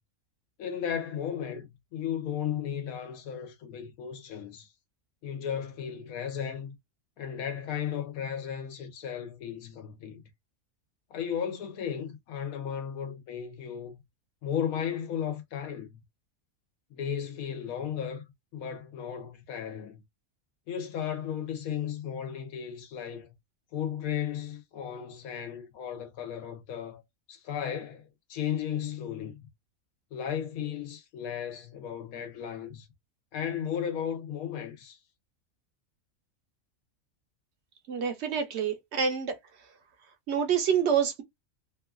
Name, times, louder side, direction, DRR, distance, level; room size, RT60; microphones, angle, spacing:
voice 1, 0.6-4.7 5.2-6.8 7.2-10.2 11.1-14.0 14.4-16.0 16.9-18.3 18.5-20.0 20.7-23.3 23.7-27.0 27.3-29.4 30.1-32.9 33.3-35.0, left 8 dB, 80° left, 1.1 m, -35 dB
voice 2, 37.9-39.4 40.3-41.2, right 7 dB, 60° right, 0.8 m, -27 dB
3.0 x 2.3 x 2.3 m
omnidirectional pair, 1.5 m